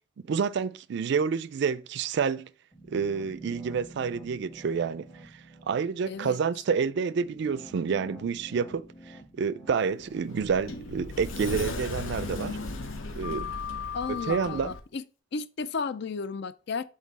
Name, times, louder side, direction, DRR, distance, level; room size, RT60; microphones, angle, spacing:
voice 1, 0.3-2.5 2.9-5.4 5.7-12.6 13.2-13.5 14.3-14.7, right 6 dB, 60° right, 0.4 m, -29 dB
sound 1, 2.7-11.6, right 1 dB, 10° left, 0.9 m, -50 dB
voice 2, 6.1-6.4 13.9-15.0 15.3-16.8, left 4 dB, 60° left, 0.5 m, -33 dB
Sliding door, 10.0-14.8, left 3 dB, 85° left, 1.0 m, -35 dB
7.4 x 3.8 x 4.0 m
head